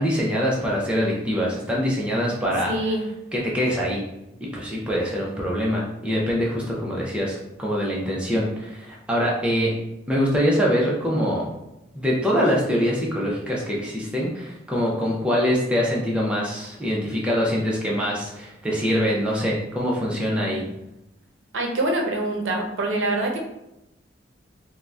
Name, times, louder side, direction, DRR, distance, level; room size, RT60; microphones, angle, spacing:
voice 1, 0.0-2.9 3.3-4.0 4.4-9.7 10.1-11.5 11.9-20.6, equal, 5° right, -4 dB, 0.4 m, -24 dB
voice 2, 2.6-3.0 21.5-23.4, right 2 dB, 80° right, 1 dB, 0.6 m, -24 dB
3.7 x 2.1 x 2.3 m, 0.89 s
head